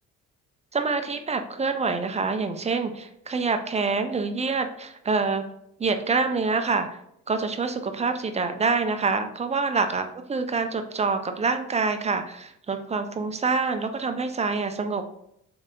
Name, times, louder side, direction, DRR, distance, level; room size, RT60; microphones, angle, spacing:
voice 1, 0.7-5.4 5.8-6.9 7.3-15.0, right 4 dB, 20° right, 7 dB, 0.5 m, -26 dB
3.9 x 3.2 x 3.7 m, 0.74 s
cardioid pair, 90°, 30 cm